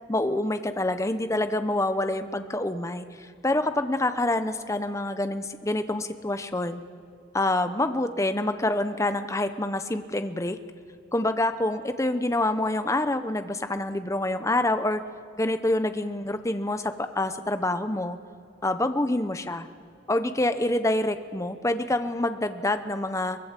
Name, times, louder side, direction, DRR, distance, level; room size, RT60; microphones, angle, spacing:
voice 1, 0.1-3.0 3.4-6.8 7.3-10.6 11.1-15.0 15.4-18.2 18.6-19.7 20.1-23.4, left 1 dB, 15° left, 9 dB, 0.8 m, -26 dB
23.0 x 19.5 x 7.5 m, 2.5 s
head